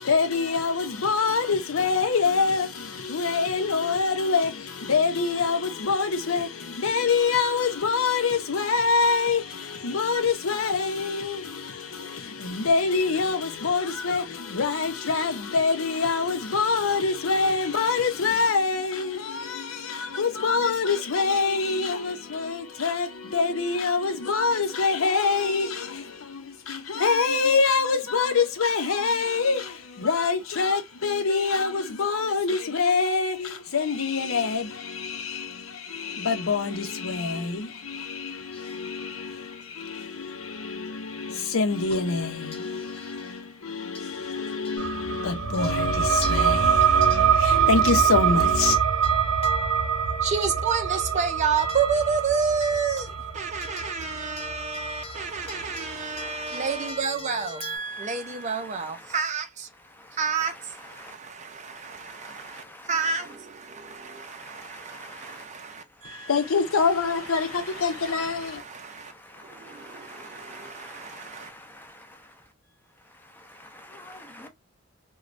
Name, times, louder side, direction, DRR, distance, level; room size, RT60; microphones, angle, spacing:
voice 1, 0.0-48.8 66.0-68.6, left 4 dB, 90° left, 0.7 m, -25 dB
sound 1, 38.5-45.1 45.5-45.8 46.2-57.8, left 2 dB, 30° left, 0.9 m, -41 dB
sound 2, 44.8-55.9, right 7 dB, 75° right, 0.6 m, -24 dB
voice 2, 50.2-59.7 60.2-66.3 67.2-71.5, right 5 dB, 35° right, 0.5 m, -30 dB
voice 3, 54.8-56.9 57.8-59.2 59.8-61.1 61.6-63.3 63.8-65.4 65.9-66.3 66.6-68.3 68.7-72.5 73.0-74.5, left 1 dB, 10° left, 0.6 m, -48 dB
3.1 x 2.2 x 2.5 m
head